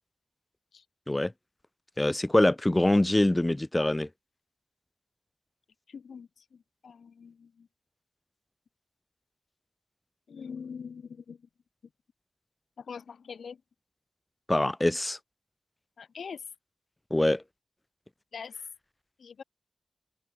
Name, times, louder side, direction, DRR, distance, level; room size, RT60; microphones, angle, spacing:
voice 1, 2.0-4.1 14.5-15.2 17.1-17.4, left 1 dB, 20° left, 1.3 m, -24 dB
voice 2, 5.9-7.7 10.3-11.4 12.8-13.6 16.0-16.4 18.3-18.5 19.2-19.4, left 6 dB, 90° left, 4.7 m, -43 dB
open air
cardioid pair, 50°, 0 cm